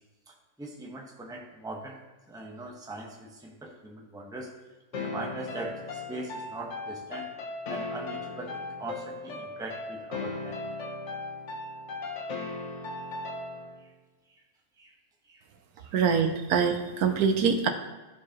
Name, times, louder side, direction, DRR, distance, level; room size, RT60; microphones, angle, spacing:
voice 1, 0.6-2.0 2.3-4.5 4.9-5.7 6.1-7.3 7.7-10.6 14.8-14.9, right 2 dB, 5° right, -1 dB, 0.8 m, -40 dB
sound 1, 4.9-13.8, left 3 dB, 55° left, 1.2 m, -37 dB
voice 2, 15.9-17.7, right 6 dB, 80° right, 6 dB, 1.3 m, -24 dB
13.5 x 4.7 x 2.9 m, 1.2 s
omnidirectional pair, 1.6 m